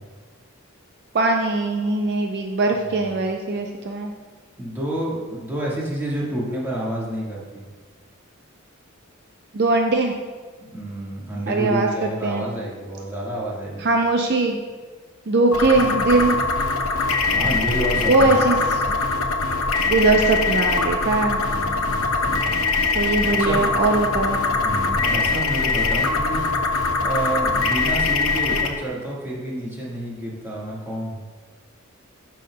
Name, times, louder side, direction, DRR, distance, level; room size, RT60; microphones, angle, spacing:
voice 1, 1.1-4.1 9.5-10.1 11.5-12.4 13.8-14.6 15.3-16.4 18.1-18.6 19.9-21.4 23.0-24.4, right 3 dB, 55° right, 3 dB, 0.5 m, -20 dB
voice 2, 2.7-3.2 4.6-7.7 10.6-13.9 17.3-18.4 21.4-22.6 23.4-23.7 24.5-26.5 27.0-31.2, right 1 dB, 10° right, -6 dB, 1.6 m, -29 dB
sound 1, 15.5-28.7, left 3 dB, 75° left, 0.8 m, -22 dB
11.5 x 5.5 x 2.2 m, 1.5 s
head